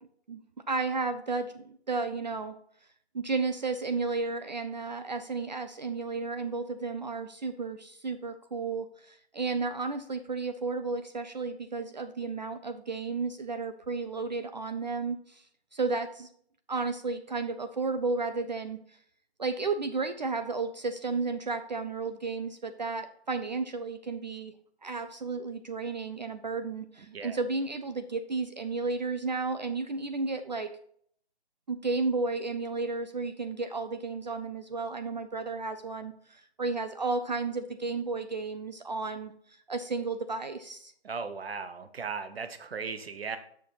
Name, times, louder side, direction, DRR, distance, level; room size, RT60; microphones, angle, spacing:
voice 1, 0.7-2.6 3.1-15.4 15.7-16.3 16.7-18.8 19.4-24.5 24.8-30.7 31.7-40.9, right 4 dB, 40° right, 9 dB, 0.4 m, -33 dB
voice 2, 27.1-27.4 41.0-43.4, right 5 dB, 65° right, 10 dB, 1.0 m, -37 dB
6.5 x 6.4 x 4.0 m, 0.63 s
figure-of-eight pair, 155°, 33 cm